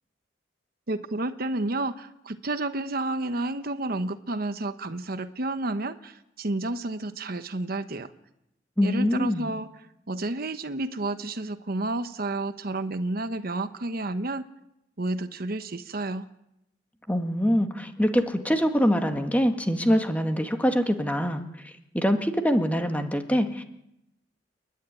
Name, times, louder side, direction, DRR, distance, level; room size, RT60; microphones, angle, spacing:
voice 1, 0.9-8.1 8.8-9.7 10.1-14.5 15.0-16.3, right 2 dB, 55° right, 10 dB, 1.0 m, -30 dB
voice 2, 8.8-9.5 17.1-23.6, equal, 10° left, 6 dB, 1.7 m, -24 dB
29.5 x 11.5 x 10.0 m, 0.83 s
head